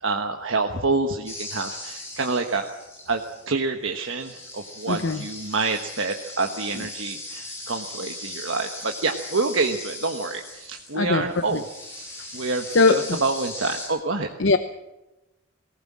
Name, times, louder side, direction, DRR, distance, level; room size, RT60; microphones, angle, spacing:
voice 1, 0.0-2.7 3.1-3.2 3.5-14.3, right 3 dB, 75° right, 4 dB, 1.3 m, -27 dB
sound 1, 1.3-3.5 3.9-11.0 11.3-13.9, left 2 dB, 10° left, 7.6 m, -39 dB
voice 2, 4.9-5.2 10.9-11.2 12.7-13.2 14.4-14.6, left 3 dB, 70° left, 9 dB, 0.8 m, -20 dB
19.5 x 18.0 x 7.4 m, 1.0 s
head